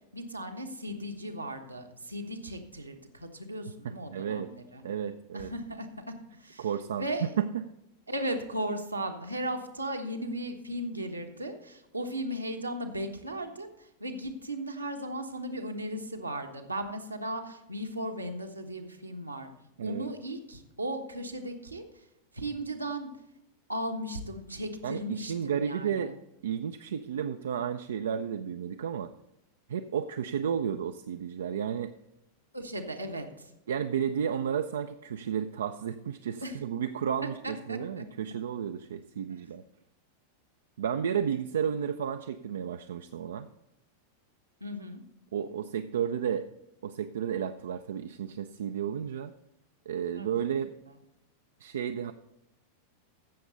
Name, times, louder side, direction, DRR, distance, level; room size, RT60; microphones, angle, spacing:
voice 1, 0.0-4.8 5.3-6.7 6.9-7.3 8.1-19.5 19.8-22.0 22.3-23.1 23.7-26.1 32.5-33.5 36.4-36.6 37.2-38.0 44.6-45.0 50.2-50.6, right 1 dB, 85° right, 3 dB, 1.2 m, -36 dB
voice 2, 4.1-4.5 4.8-5.5 6.6-7.6 19.8-20.1 24.8-26.2 26.4-29.1 29.7-31.9 33.7-39.6 40.8-43.5 45.3-46.5 46.8-49.3 49.9-50.7 51.6-52.1, right 8 dB, 65° right, 8 dB, 0.4 m, -32 dB
15.0 x 6.8 x 4.0 m, 0.87 s
figure-of-eight pair, 90°, 0 cm